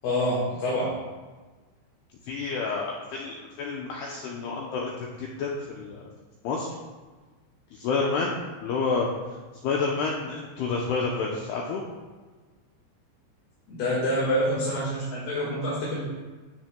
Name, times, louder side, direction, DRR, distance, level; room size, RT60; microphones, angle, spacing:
voice 1, 0.0-1.0 13.7-16.0, equal, 65° left, -6 dB, 3.4 m, -26 dB
voice 2, 2.3-6.0 6.4-6.7 7.7-9.1 9.6-11.8, left 4 dB, 80° left, -1 dB, 2.3 m, -29 dB
16.0 x 7.4 x 2.2 m, 1.3 s
omnidirectional pair, 5.5 m